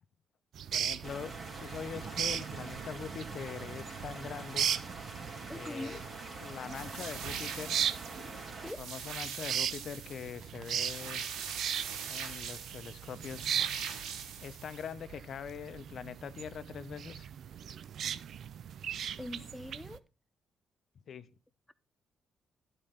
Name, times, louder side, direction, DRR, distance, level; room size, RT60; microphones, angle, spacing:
sound 1, 0.5-20.0, right 9 dB, 65° right, 0.4 m, -38 dB
voice 1, 0.7-4.7 5.5-6.0 6.4-7.8 8.6-11.2 12.1-13.5 14.4-17.3 21.1-21.3, left 7 dB, 60° left, 0.7 m, -43 dB
sound 2, 1.0-8.7, right 3 dB, 40° right, 2.2 m, -45 dB
voice 2, 5.5-6.0 8.6-8.8 19.2-20.0, left 1 dB, 10° left, 0.5 m, -42 dB
sound 3, 6.7-14.9, right 7 dB, 85° right, 1.1 m, -42 dB
11.0 x 4.4 x 5.1 m
cardioid pair, 90°, 0 cm